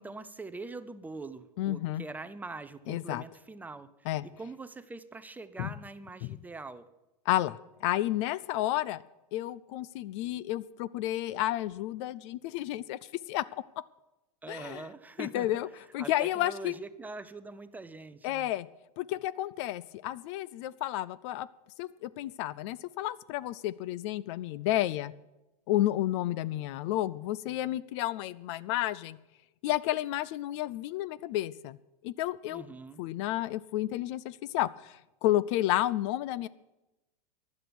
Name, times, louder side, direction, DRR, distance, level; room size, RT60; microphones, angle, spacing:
voice 1, 0.0-3.9 4.2-6.9 14.4-15.5 16.0-18.5 32.5-33.0, right 3 dB, 10° right, 12 dB, 0.5 m, -43 dB
voice 2, 1.6-2.0 2.9-3.2 4.1-4.2 5.6-5.7 6.2-6.4 7.3-9.0 9.3-13.0 13.3-13.6 14.5-14.8 15.2-15.7 15.9-16.7 18.2-18.7 19.0-21.5 21.8-25.1 25.7-29.2 29.6-31.8 32.0-32.7 33.0-36.5, left 14 dB, 45° left, 20 dB, 0.4 m, -31 dB
15.0 x 11.0 x 6.0 m, 0.98 s
supercardioid pair, 140°, 21 cm